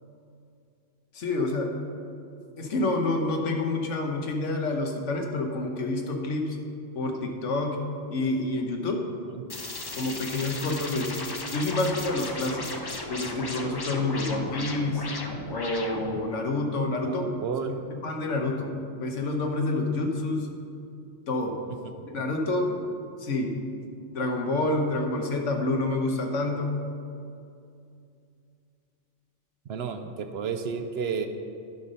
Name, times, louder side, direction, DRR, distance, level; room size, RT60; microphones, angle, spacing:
voice 1, 1.1-1.8 2.6-6.6 6.9-7.8 8.1-9.1 9.9-11.2 11.5-15.1 15.5-18.7 19.0-20.5 21.3-21.6 22.1-22.8 23.2-23.6 24.1-26.8, left 2 dB, 85° left, 3 dB, 1.4 m, -28 dB
sound 1, 9.5-16.2, left 2 dB, 30° left, 0.5 m, -36 dB
voice 2, 17.0-17.8 21.8-22.1 29.7-31.3, right 6 dB, 65° right, 7 dB, 0.8 m, -32 dB
11.0 x 5.6 x 5.2 m, 2.5 s
omnidirectional pair, 1.2 m